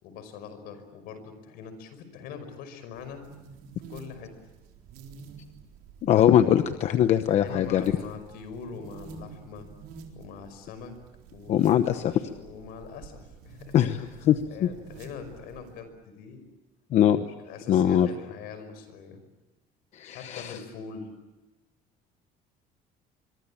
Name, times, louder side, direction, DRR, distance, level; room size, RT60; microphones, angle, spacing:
voice 1, 0.0-3.2 3.9-4.4 7.3-9.7 10.1-10.9 11.3-12.0 12.3-16.5 17.2-19.2 20.1-21.1, left 6 dB, 70° left, 10 dB, 5.4 m, -43 dB
sound 1, 2.9-15.8, right 5 dB, 80° right, 4.1 m, -49 dB
voice 2, 6.0-7.8 11.5-12.1 13.7-14.0 14.3-14.7 16.9-17.2 17.7-18.1 19.9-20.5, left 10 dB, 45° left, 9 dB, 0.9 m, -21 dB
25.5 x 23.5 x 8.7 m, 1.1 s
cardioid pair, 175°, 16 cm